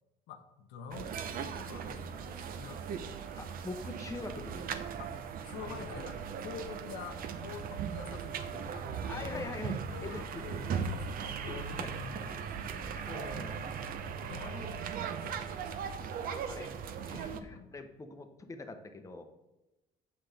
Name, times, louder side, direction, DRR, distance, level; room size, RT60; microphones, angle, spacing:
voice 1, 0.3-3.4 5.0-9.5 9.9-13.1 14.2-14.6 15.1-15.5 17.5-17.7, left 6 dB, 90° left, 6 dB, 0.8 m, -47 dB
sound 1, 0.9-17.4, right 6 dB, 60° right, 0.6 m, -38 dB
voice 2, 3.4-4.8 9.1-9.8 10.0-10.9 11.5-11.9 12.7-12.8 13.1-13.7 14.4-14.7 15.0-15.2 16.3-16.7 17.0-19.3, left 3 dB, 20° left, 6 dB, 0.8 m, -44 dB
7.8 x 5.9 x 3.3 m, 1.0 s
cardioid pair, 110°, 17 cm